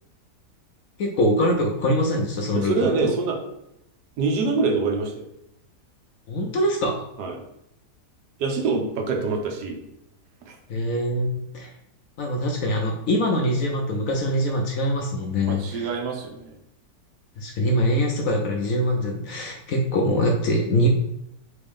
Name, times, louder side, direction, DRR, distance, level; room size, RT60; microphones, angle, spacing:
voice 1, 1.0-2.9 6.3-7.0 10.7-11.7 12.2-15.9 17.4-20.9, equal, 70° left, 1 dB, 0.8 m, -23 dB
voice 2, 2.6-3.4 4.2-5.2 7.2-7.4 8.4-9.8 10.5-10.6 15.5-16.6, right 4 dB, 75° right, 3 dB, 1.3 m, -25 dB
3.8 x 3.4 x 3.6 m, 0.82 s
omnidirectional pair, 1.8 m